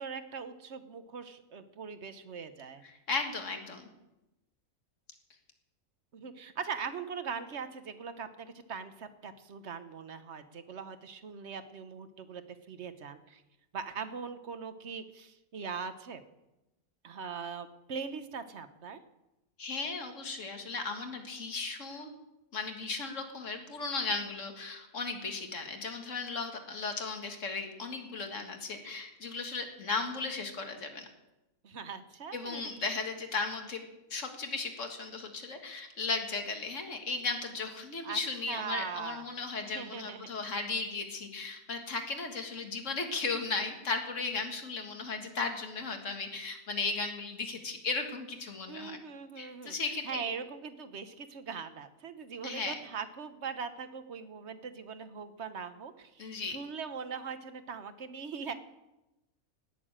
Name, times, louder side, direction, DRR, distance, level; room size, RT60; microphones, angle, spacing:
voice 1, 0.0-2.8 6.1-13.4 13.7-16.2 17.0-19.0 31.6-32.9 38.0-38.2 38.5-39.2 39.6-40.3 48.7-58.5, right 6 dB, 55° right, 10 dB, 1.2 m, -41 dB
voice 2, 2.8-3.9 19.6-22.1 22.5-31.1 32.3-33.8 34.1-49.0 49.4-50.2 52.4-52.7 56.2-56.6, left 4 dB, 60° left, 5 dB, 2.1 m, -36 dB
18.0 x 7.0 x 8.8 m, 0.98 s
omnidirectional pair, 1.5 m